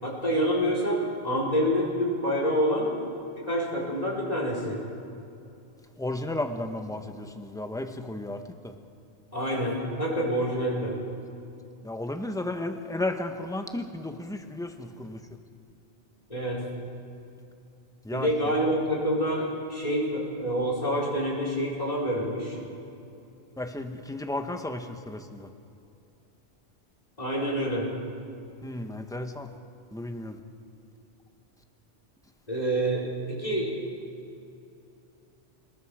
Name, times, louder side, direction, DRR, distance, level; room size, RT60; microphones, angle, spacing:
voice 1, 0.0-2.9 3.3-4.8 9.3-11.0 16.3-16.6 18.1-22.6 27.2-27.9 32.5-33.7, equal, 35° left, -3 dB, 4.7 m, -27 dB
voice 2, 6.0-8.7 11.8-15.2 18.0-18.3 23.6-25.5 28.6-29.5 29.9-30.4, left 2 dB, 5° left, 6 dB, 1.2 m, -34 dB
28.5 x 20.0 x 5.0 m, 2.7 s
omnidirectional pair, 1.2 m